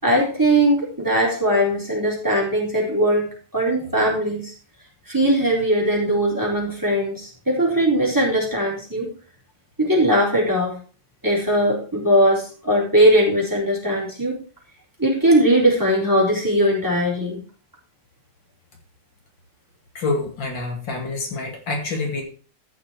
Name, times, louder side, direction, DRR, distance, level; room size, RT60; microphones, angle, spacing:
voice 1, 0.0-3.3 3.5-4.5 5.1-9.1 9.8-10.8 11.2-14.4 15.0-17.4, right 1 dB, 10° right, -4 dB, 4.2 m, -19 dB
voice 2, 19.9-22.2, left 3 dB, 80° left, 2 dB, 3.0 m, -27 dB
14.0 x 6.2 x 4.6 m, 0.39 s
omnidirectional pair, 2.0 m